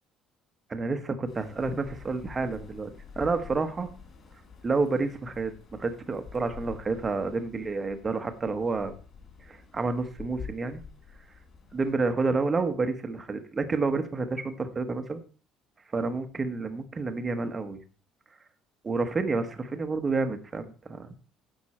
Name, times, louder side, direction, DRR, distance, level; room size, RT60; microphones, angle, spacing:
voice 1, 0.7-2.9 3.2-3.9 4.6-9.0 9.5-10.8 11.7-15.2 15.9-17.8 18.8-21.2, right 3 dB, 15° right, 8 dB, 1.0 m, -29 dB
sound 1, 1.3-11.9, left 6 dB, 30° left, 4.3 m, -48 dB
9.6 x 8.2 x 4.2 m, 0.37 s
cardioid pair, 175°, 0 cm